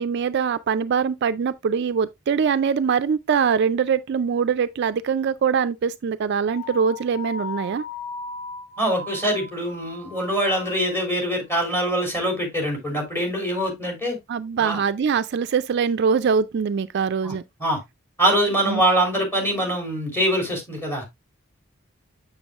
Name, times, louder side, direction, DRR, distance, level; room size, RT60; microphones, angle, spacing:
voice 1, 0.0-7.8 14.3-17.4 18.7-18.8, right 6 dB, 55° right, 0.3 m, -23 dB
sound 1, 6.5-11.1, left 3 dB, 40° left, 3.5 m, -37 dB
voice 2, 8.8-14.2 14.5-14.8 17.2-17.3 17.6-17.8 18.2-21.0, right 1 dB, 10° left, 3.4 m, -23 dB
7.1 x 6.8 x 2.4 m
head